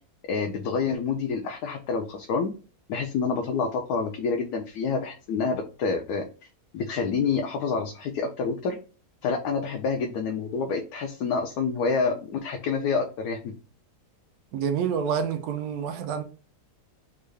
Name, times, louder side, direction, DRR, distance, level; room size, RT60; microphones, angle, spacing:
voice 1, 0.3-2.5 2.9-6.2 6.7-8.8 9.2-13.5, left 5 dB, 80° left, 1.1 m, -28 dB
voice 2, 14.5-16.2, right 7 dB, 75° right, 1.1 m, -28 dB
3.6 x 2.3 x 3.1 m
omnidirectional pair, 1.7 m